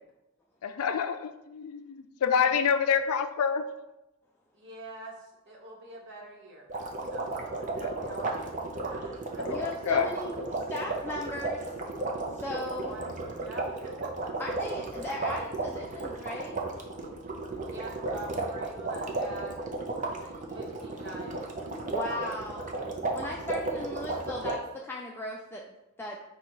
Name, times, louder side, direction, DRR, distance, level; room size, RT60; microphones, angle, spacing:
voice 1, 0.6-3.7 7.8-7.9 9.4-9.6 9.9-10.1, left 7 dB, 80° left, 10 dB, 0.4 m, -27 dB
voice 2, 4.5-6.7 7.0-9.7 12.7-14.3 17.7-19.6 20.5-22.1, right 1 dB, 55° right, -2 dB, 1.0 m, -45 dB
sound 1, 6.7-24.5, right 2 dB, 35° right, 0.6 m, -34 dB
voice 3, 9.5-11.6 12.4-13.0 14.4-16.6 21.9-22.7 23.1-24.6 24.9-25.6 26.0-26.1, left 1 dB, 10° left, -2 dB, 0.3 m, -37 dB
5.1 x 2.3 x 4.5 m, 0.92 s
head